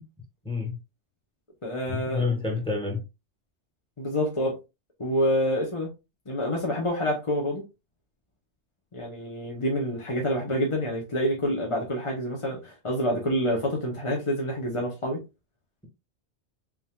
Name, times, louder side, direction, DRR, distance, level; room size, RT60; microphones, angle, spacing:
voice 1, 0.4-0.8 1.9-3.0, left 4 dB, 5° left, 1.2 m, -28 dB
voice 2, 1.6-2.2 4.0-4.5 5.0-5.9 6.3-7.6 8.9-15.2, equal, 30° left, 0.9 m, -27 dB
4.2 x 3.6 x 2.3 m
omnidirectional pair, 1.2 m